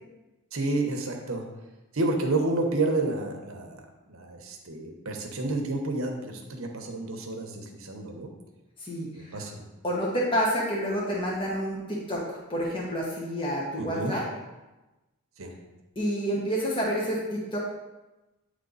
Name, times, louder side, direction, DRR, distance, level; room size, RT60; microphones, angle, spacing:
voice 1, 0.5-1.4 1.9-3.8 4.1-8.3 9.3-9.6 13.8-14.1 15.4-15.5, right 2 dB, 65° right, 3 dB, 1.0 m, -30 dB
voice 2, 8.8-9.5 9.8-12.2 12.5-14.2 16.0-17.6, equal, 25° left, -5 dB, 1.2 m, -29 dB
9.0 x 3.2 x 4.0 m, 1.1 s
head